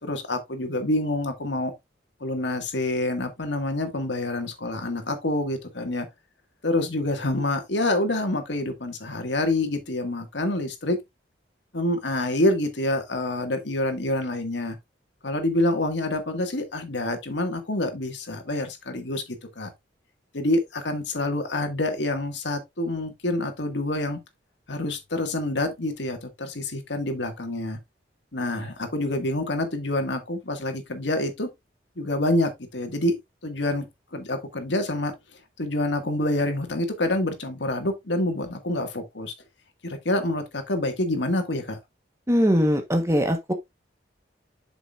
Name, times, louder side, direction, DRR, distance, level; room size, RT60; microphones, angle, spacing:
voice 1, 0.0-1.7 2.2-6.1 6.6-11.0 11.7-14.8 15.2-19.2 19.6-19.7 20.3-24.2 24.7-27.8 28.3-31.5 32.0-33.1 33.4-33.9 34.1-35.1 35.6-39.3 39.8-41.8, left 1 dB, 80° left, 1.9 m, -27 dB
voice 2, 42.3-43.5, equal, 15° right, 1.2 m, -21 dB
8.0 x 6.2 x 2.5 m
head